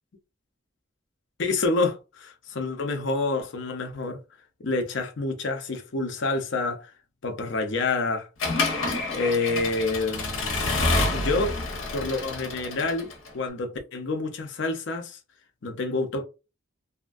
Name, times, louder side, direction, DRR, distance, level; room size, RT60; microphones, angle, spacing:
voice 1, 1.4-4.2 4.6-6.9 7.2-8.3 8.8-10.6 11.1-11.6 11.9-15.2 15.6-16.2, left 3 dB, 65° left, 0.6 m, -28 dB
Accelerating revving vroom / Mechanisms, 8.4-13.3, left 2 dB, 85° left, 0.9 m, -28 dB
2.7 x 2.3 x 2.5 m
head